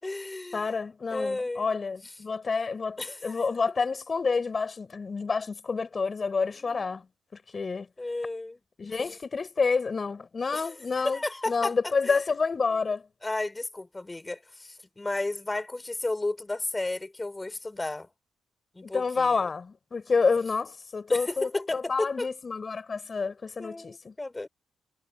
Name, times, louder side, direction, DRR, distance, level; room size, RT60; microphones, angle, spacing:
voice 1, 0.0-0.7 1.1-1.7 3.0-3.4 6.6-6.8 8.0-9.0 10.5-12.2 13.2-18.1 18.7-19.5 21.1-22.3 23.6-24.5, left 2 dB, 15° left, 4.4 m, -33 dB
voice 2, 0.5-7.1 7.5-7.9 8.8-13.0 18.8-24.1, left 4 dB, 35° left, 5.9 m, -29 dB
cardioid pair, 90°, 0 cm